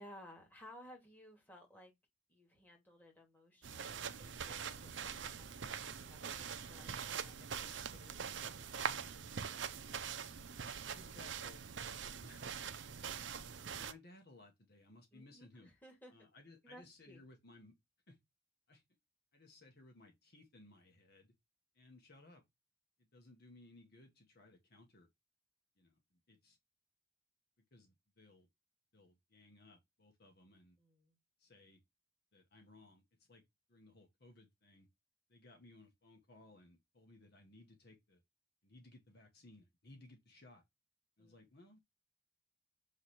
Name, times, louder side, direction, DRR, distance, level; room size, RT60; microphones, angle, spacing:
voice 1, 0.0-1.9 2.3-9.2 15.1-16.1 16.6-17.2 30.8-31.2 41.2-41.4, equal, 10° left, 2.3 m, -59 dB
sound 1, 3.6-13.9, right 7 dB, 70° right, 0.6 m, -43 dB
voice 2, 10.9-11.6 12.1-12.5 13.4-15.7 16.1-17.7 18.1-18.2 18.7-18.8 19.3-21.3 21.7-22.4 23.0-25.1 25.8-26.6 27.7-28.5 28.9-30.8 31.4-31.8 32.3-33.4 33.7-34.9 35.3-38.2 38.6-40.6 41.2-41.8, left 2 dB, 55° left, 1.4 m, -61 dB
7.2 x 3.2 x 4.2 m
head